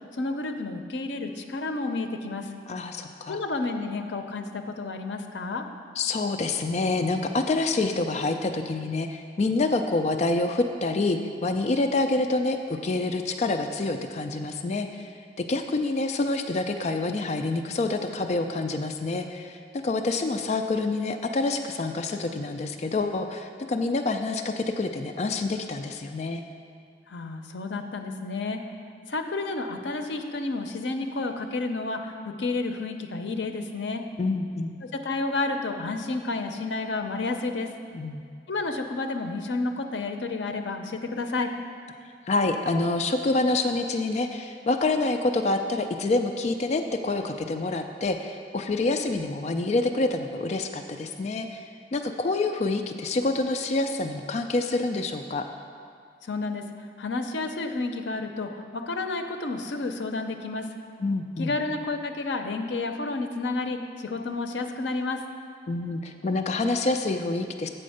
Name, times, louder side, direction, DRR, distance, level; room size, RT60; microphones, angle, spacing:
voice 1, 0.1-2.5 3.3-5.6 27.1-28.6 29.1-34.0 34.9-37.7 38.5-41.5 56.2-56.6 57.0-60.7 61.4-65.2, left 3 dB, 80° left, 5 dB, 0.6 m, -30 dB
voice 2, 2.7-3.4 6.0-15.1 15.4-26.4 34.2-34.7 37.9-38.3 42.3-55.5 61.0-61.5 65.7-67.7, left 2 dB, 40° left, 6 dB, 0.3 m, -27 dB
8.4 x 4.4 x 6.4 m, 2.2 s
head